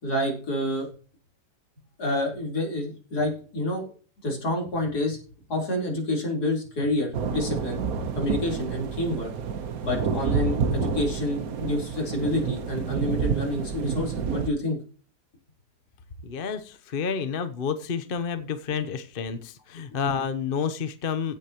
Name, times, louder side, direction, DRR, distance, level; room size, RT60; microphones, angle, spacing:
voice 1, 0.0-0.9 2.0-3.8 4.2-5.2 5.5-7.8 8.2-9.3 9.8-14.8, left 1 dB, 70° left, -1 dB, 4.5 m, -28 dB
sound 1, 7.1-14.5, right 6 dB, 60° right, 1.4 m, -29 dB
voice 2, 16.2-21.4, left 6 dB, 40° left, 10 dB, 0.9 m, -30 dB
16.0 x 8.1 x 3.0 m, 0.40 s
omnidirectional pair, 1.8 m